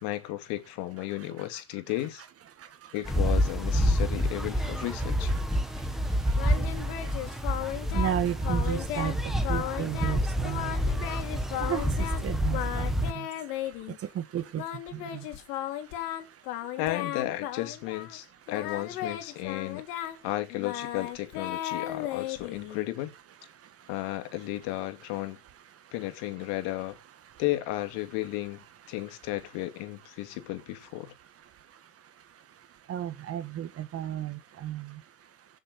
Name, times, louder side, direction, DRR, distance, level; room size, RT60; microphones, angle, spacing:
voice 1, 0.0-2.2 2.9-5.3 16.8-23.1 23.9-25.4 25.9-27.0 27.4-31.1, left 16 dB, 60° left, 2.5 m, -34 dB
voice 2, 1.2-1.5 2.6-3.0 4.6-4.7 5.3-15.3 22.5-22.6 23.8-23.9 27.2-27.3 32.9-35.0, right 11 dB, 30° right, 1.6 m, -36 dB
sound 1, 3.0-13.1, equal, ahead, 1.7 m, -28 dB
Singing, 6.4-8.2 8.4-9.2 9.4-10.2 10.4-12.2 12.5-14.0 14.6-18.2 18.5-22.9, left 12 dB, 75° left, 3.5 m, -35 dB
16.5 x 7.6 x 5.2 m
supercardioid pair, 140°, 46 cm